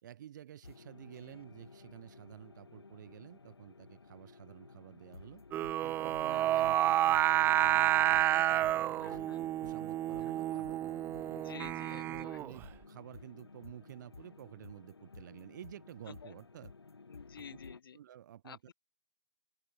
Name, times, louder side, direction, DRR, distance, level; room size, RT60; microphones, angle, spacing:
voice 1, 0.0-5.4 5.8-11.4 11.9-16.7 17.4-17.5 17.9-18.7, right 11 dB, 50° right, 6.0 m, -51 dB
sound 1, 0.6-17.8, left 4 dB, 85° left, 5.9 m, -54 dB
Singing, 5.5-12.6, right 13 dB, 15° right, 1.0 m, -30 dB
voice 2, 6.3-6.7 8.9-9.5 10.5-10.6 11.3-12.4 16.1-16.3 17.1-18.0 18.4-18.7, left 7 dB, 65° left, 4.2 m, -51 dB
open air
hypercardioid pair, 140°, 13 cm